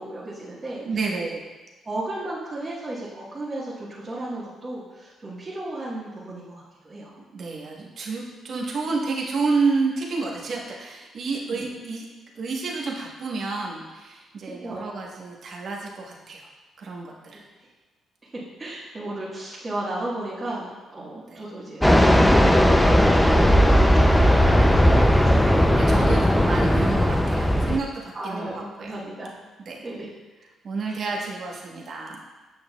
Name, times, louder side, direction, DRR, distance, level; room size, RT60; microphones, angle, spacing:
voice 1, 0.0-0.8 1.8-7.2 11.5-11.6 14.6-15.0 17.3-17.4 18.6-25.8 28.1-29.3 29.8-30.1 30.9-31.0, right 1 dB, 30° right, -8 dB, 1.4 m, -34 dB
voice 2, 0.8-1.4 7.3-12.0 12.3-16.5 16.8-17.4 21.3-21.4 23.9-24.1 25.8-29.0 29.6-29.9 30.6-32.2, right 4 dB, 55° right, -1 dB, 1.1 m, -30 dB
Fixed-wing aircraft airplane, 21.8-27.8, equal, 5° left, 0.4 m, -17 dB
7.8 x 6.4 x 2.3 m, 1.2 s
cardioid pair, 90°, 0 cm